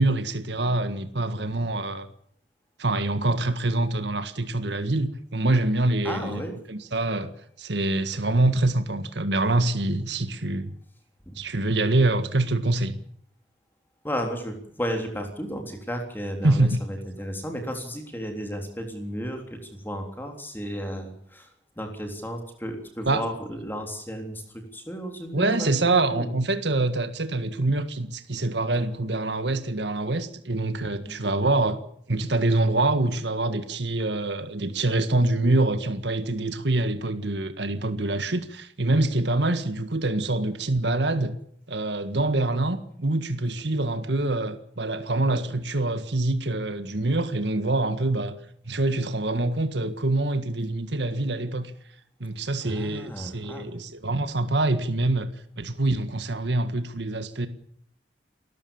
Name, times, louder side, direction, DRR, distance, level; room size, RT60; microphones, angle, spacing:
voice 1, 0.0-2.1 2.8-6.4 6.7-7.3 7.6-10.7 11.4-13.0 16.4-16.8 23.1-23.2 25.3-31.8 32.1-41.4 41.7-48.4 48.7-51.7 52.2-55.3 55.6-57.5, right 2 dB, 75° right, 1.8 m, -25 dB
voice 2, 6.0-6.5 11.2-11.4 14.0-26.4 31.0-31.3 52.6-53.8, equal, 10° left, 3.5 m, -34 dB
29.0 x 14.0 x 7.2 m
head